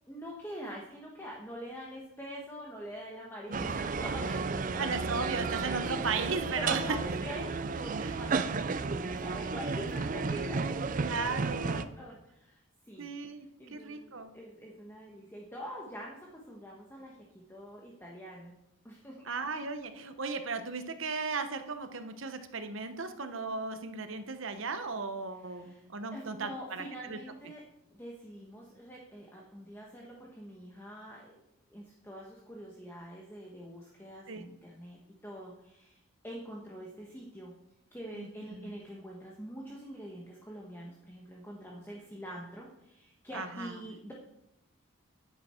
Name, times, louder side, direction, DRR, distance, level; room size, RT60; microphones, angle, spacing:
voice 1, 0.1-4.9 5.3-5.4 6.6-18.5 18.8-19.2 25.4-25.8 26.1-27.6 27.9-31.3 31.7-35.0 35.2-37.5 37.9-44.1, equal, 10° left, -2 dB, 1.2 m, -45 dB
sound 1, 3.5-11.9, right 4 dB, 35° right, 0.4 m, -33 dB
voice 2, 3.5-3.9 4.8-7.0 8.0-8.2 11.0-11.9 13.0-14.3 19.2-27.2 34.3-34.5 38.1-38.7 43.3-43.8, right 4 dB, 60° right, 8 dB, 1.0 m, -36 dB
10.5 x 9.2 x 4.4 m, 0.84 s
head